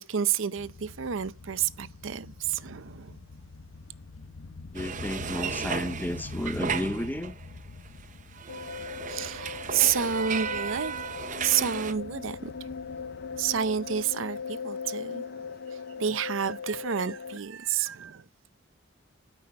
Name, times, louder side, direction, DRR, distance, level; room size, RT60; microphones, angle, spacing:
voice 1, 0.0-3.2 9.1-10.9 11.4-12.5 13.4-18.2, right 8 dB, 80° right, 0.6 m, -30 dB
sound 1, 0.6-14.4, left 3 dB, 80° left, 0.9 m, -45 dB
voice 2, 4.7-7.3, left 1 dB, 10° left, 0.6 m, -32 dB
sound 2, 4.7-7.6 7.8-11.9, right 6 dB, 40° right, 0.7 m, -35 dB
sound 3, 8.5-17.4, left 5 dB, 55° left, 0.5 m, -39 dB
13.0 x 5.6 x 6.2 m
head